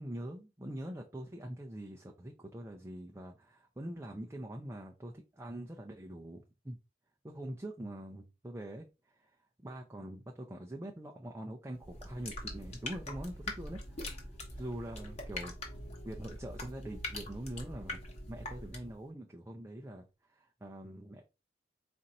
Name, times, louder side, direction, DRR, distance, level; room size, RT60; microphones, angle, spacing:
voice 1, 0.0-6.8 7.2-14.3 14.6-18.0 18.3-21.2, right 1 dB, 15° right, 0.5 m, -44 dB
sound 1, 11.8-19.0, left 1 dB, 35° left, 1.1 m, -43 dB
4.3 x 2.6 x 4.1 m
head